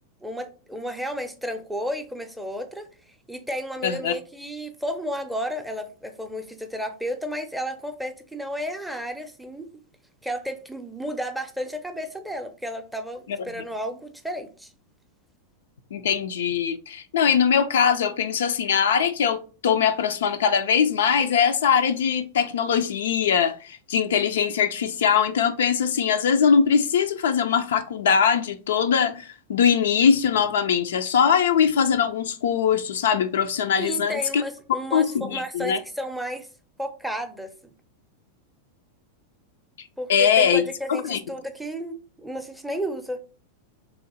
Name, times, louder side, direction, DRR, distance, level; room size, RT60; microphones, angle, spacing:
voice 1, 0.2-9.7 10.2-14.7 33.8-36.5 36.8-37.7 40.0-43.2, equal, ahead, 0.6 m, -32 dB
voice 2, 3.8-4.1 15.9-34.4 34.7-35.8 40.1-40.6 41.1-41.2, left 7 dB, 60° left, 0.3 m, -21 dB
3.4 x 2.9 x 3.9 m
figure-of-eight pair, 90°, 0 cm